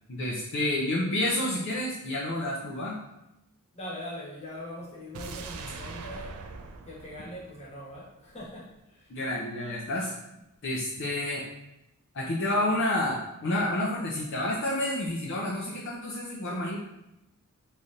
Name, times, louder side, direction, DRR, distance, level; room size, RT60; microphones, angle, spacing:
voice 1, 0.1-3.0 9.1-10.1 10.6-11.4 12.1-16.8, left 1 dB, 55° left, -4 dB, 0.6 m, -29 dB
voice 2, 3.7-6.3 6.9-9.1, left 1 dB, 30° left, -6 dB, 1.2 m, -41 dB
sound 1, 5.1-8.3 8.6-8.7, right 4 dB, 80° right, 0.4 m, -42 dB
3.8 x 3.2 x 2.6 m, 0.90 s
head